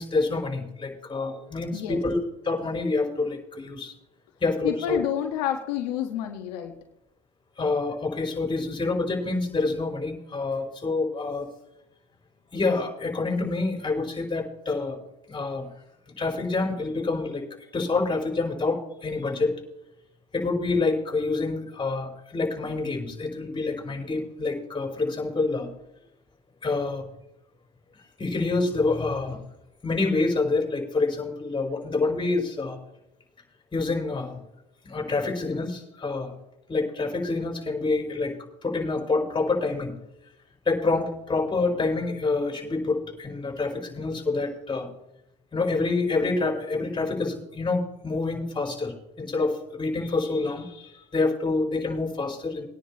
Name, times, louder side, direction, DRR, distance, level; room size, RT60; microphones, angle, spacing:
voice 1, 0.0-2.2 2.4-3.9 4.4-5.0 7.6-11.5 12.5-15.0 15.3-15.7 16.2-17.5 17.7-19.5 20.3-25.7 26.6-27.0 28.2-29.4 29.8-32.8 33.7-34.4 34.8-36.3 36.7-38.4 38.6-39.9 40.7-44.9 45.5-52.7, left 3 dB, 25° left, 2 dB, 5.3 m, -27 dB
voice 2, 4.6-6.7, left 10 dB, 80° left, 4 dB, 1.5 m, -29 dB
21.5 x 10.0 x 3.0 m, 0.83 s
hypercardioid pair, 80°, 20 cm